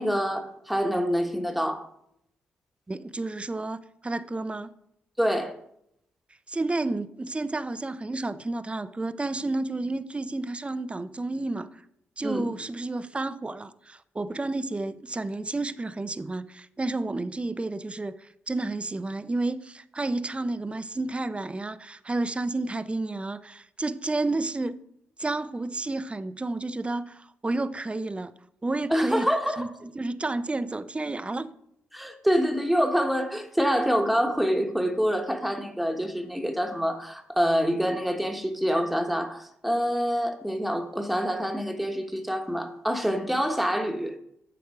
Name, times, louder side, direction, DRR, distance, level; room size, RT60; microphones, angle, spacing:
voice 1, 0.0-1.8 5.2-5.5 12.2-12.5 28.9-29.7 31.9-44.1, equal, ahead, 1.3 m, -26 dB
voice 2, 2.9-4.7 6.5-11.8 12.2-24.8 25.2-28.3 28.6-29.3 29.6-31.5, right 2 dB, 20° right, 0.5 m, -31 dB
8.1 x 6.0 x 4.9 m
supercardioid pair, 55°, 5 cm